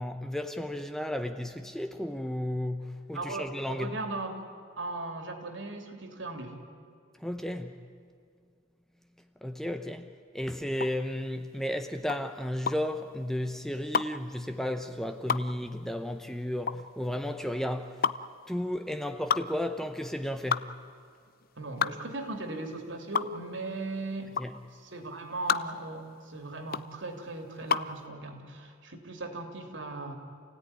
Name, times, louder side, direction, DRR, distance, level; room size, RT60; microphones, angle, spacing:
voice 1, 0.0-4.0 7.2-7.8 9.4-18.0 18.5-20.7 24.4-24.6, left 1 dB, ahead, 0.8 m, -33 dB
voice 2, 3.1-4.4 4.8-6.5 21.6-24.3 24.8-30.2, right 2 dB, 65° right, 3.0 m, -38 dB
sound 1, 10.7-28.0, left 6 dB, 45° left, 0.6 m, -32 dB
28.0 x 17.0 x 10.0 m
head